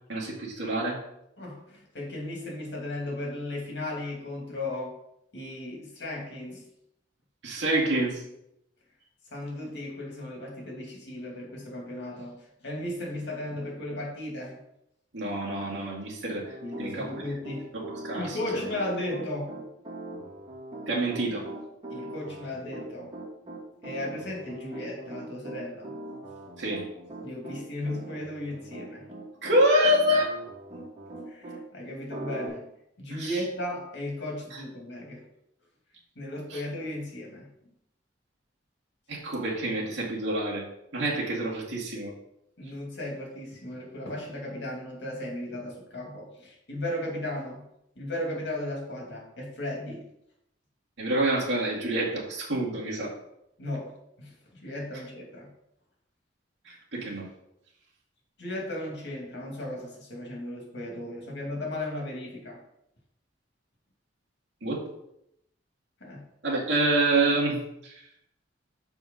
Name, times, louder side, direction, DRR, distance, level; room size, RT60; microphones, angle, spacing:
voice 1, 0.1-1.0 7.4-8.2 15.1-16.5 16.8-17.1 17.7-18.4 20.9-21.5 26.6-26.8 29.4-30.3 33.2-33.4 36.5-36.6 39.1-40.6 40.9-42.1 51.0-53.1 56.7-57.3 64.6-64.9 66.4-67.6 67.8-67.9, right 1 dB, 75° right, -4 dB, 2.2 m, -27 dB
voice 2, 1.4-5.0 5.3-6.6 9.3-14.6 16.6-17.7 18.1-19.5 21.9-23.1 23.8-25.9 27.2-29.1 31.3-32.6 33.0-35.2 36.2-37.5 42.6-47.6 48.0-50.0 53.6-55.5 58.4-62.6 66.0-66.2, left 1 dB, 65° left, -1 dB, 2.4 m, -35 dB
Piano, 16.4-31.6 32.1-32.5, right 2 dB, 25° right, 2.7 m, -41 dB
6.5 x 4.9 x 5.4 m, 0.80 s
head